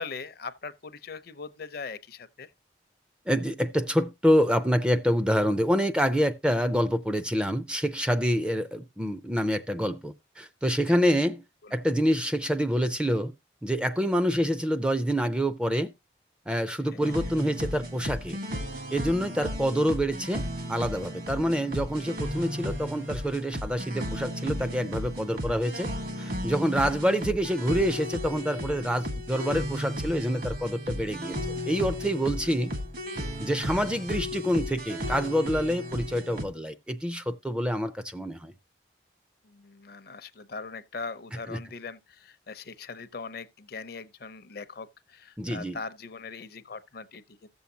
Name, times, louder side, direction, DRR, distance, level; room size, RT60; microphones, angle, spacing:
voice 1, 0.0-2.5 10.9-11.0 11.6-11.7 16.9-17.1 32.4-32.5 39.4-47.5, left 4 dB, 55° left, 0.6 m, -40 dB
voice 2, 3.3-11.4 11.7-13.3 13.6-15.9 16.5-18.4 18.9-25.9 26.2-31.4 31.7-32.7 33.4-38.5 41.5-41.6 45.4-45.8, equal, 5° right, 0.4 m, -27 dB
sound 1, 17.0-36.4, equal, 50° right, 1.5 m, -34 dB
14.5 x 7.0 x 2.7 m
head